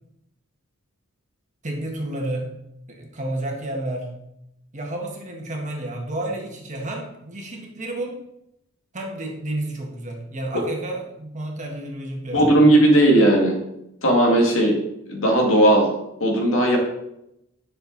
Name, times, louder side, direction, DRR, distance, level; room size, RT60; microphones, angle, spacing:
voice 1, 1.6-2.5 2.9-4.1 4.7-8.2 8.9-12.6, right 1 dB, 35° right, 0 dB, 1.7 m, -31 dB
voice 2, 12.3-13.6 14.0-14.8 15.1-15.9 16.2-16.8, right 1 dB, 65° left, 0 dB, 2.3 m, -16 dB
10.5 x 6.3 x 4.1 m, 0.84 s
head